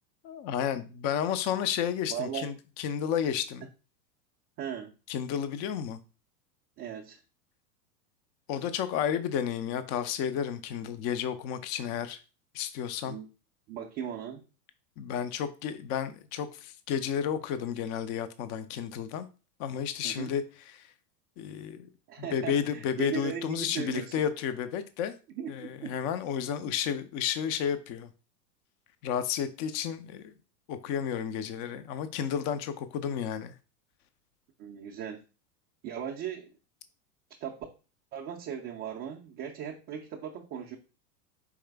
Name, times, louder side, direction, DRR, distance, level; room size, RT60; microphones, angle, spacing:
voice 1, 0.2-3.7 5.1-6.0 8.5-12.2 12.5-13.2 15.0-19.3 19.6-20.4 20.7-20.8 21.4-21.9 22.2-25.1 25.5-28.1 29.0-30.3 30.7-33.5, left 8 dB, 35° left, 0.5 m, -32 dB
voice 2, 2.1-2.5 4.6-4.9 6.8-7.2 13.1-13.3 13.7-14.4 20.0-20.3 22.1-24.2 25.4-25.9 26.6-26.7 34.6-35.2 35.8-36.5 37.4-37.7 38.1-40.8, right 8 dB, 25° right, 0.4 m, -37 dB
4.9 x 3.1 x 3.3 m
hypercardioid pair, 105°, 48 cm